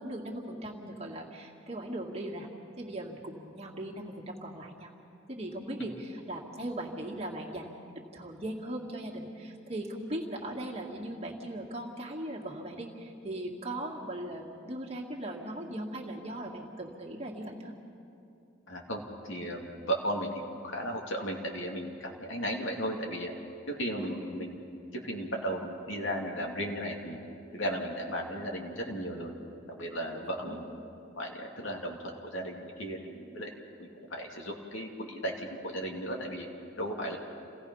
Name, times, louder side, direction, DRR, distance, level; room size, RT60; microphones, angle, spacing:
voice 1, 0.0-2.5 2.8-4.9 5.3-7.7 8.1-17.7 24.0-24.2 30.2-30.6, right 1 dB, 30° right, -2 dB, 2.0 m, -39 dB
voice 2, 18.7-19.0 19.3-23.3 23.7-24.6 24.9-27.2 27.5-29.3 29.7-30.6 31.2-33.5 33.8-36.5 36.8-37.2, equal, 80° left, 0 dB, 2.6 m, -35 dB
28.0 x 17.0 x 5.6 m, 2.6 s
head